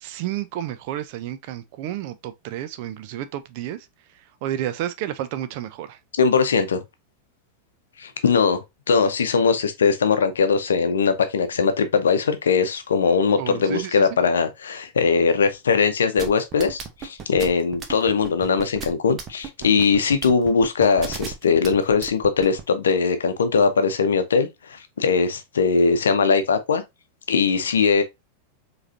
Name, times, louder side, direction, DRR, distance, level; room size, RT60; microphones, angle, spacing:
voice 1, 0.0-3.9 4.1-6.0 13.4-14.1, right 12 dB, 45° right, 0.5 m, -31 dB
voice 2, 6.2-6.8 8.0-8.6 8.9-26.8 27.3-28.0, left 5 dB, 65° left, 0.7 m, -20 dB
sound 1, 16.2-22.6, right 7 dB, 30° right, 0.9 m, -34 dB
4.8 x 3.2 x 2.6 m
figure-of-eight pair, 90°, 0 cm